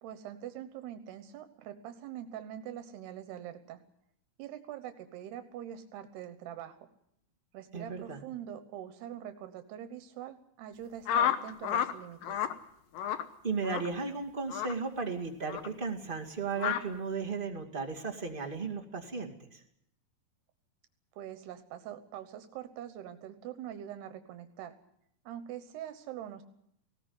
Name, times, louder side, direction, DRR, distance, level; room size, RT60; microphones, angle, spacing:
voice 1, 0.0-3.8 4.4-6.9 7.5-12.4 21.2-24.7 25.3-26.4, right 10 dB, 80° right, 9 dB, 3.1 m, -44 dB
voice 2, 7.7-8.2 13.4-19.6, right 4 dB, 20° right, 1 dB, 1.3 m, -35 dB
sound 1, 11.1-11.9 12.2-12.5 13.0-13.2 13.6-13.9 14.5-14.7 15.5-15.7 16.6-16.8, left 10 dB, 70° left, 2.6 m, -30 dB
19.0 x 17.0 x 9.5 m, 0.74 s
omnidirectional pair, 4.7 m